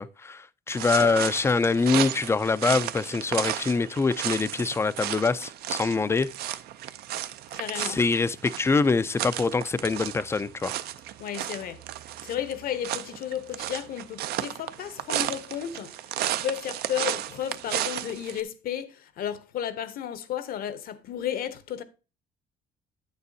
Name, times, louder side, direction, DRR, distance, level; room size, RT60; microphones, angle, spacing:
voice 1, 0.0-6.3 7.7-10.7, left 4 dB, 15° left, 0.3 m, -24 dB
sound 1, 0.7-18.4, right 12 dB, 70° right, 0.5 m, -33 dB
voice 2, 7.5-8.0 11.2-11.8 12.2-15.9 16.2-21.8, left 10 dB, 60° left, 0.8 m, -33 dB
8.8 x 6.8 x 2.7 m
cardioid pair, 110°, 17 cm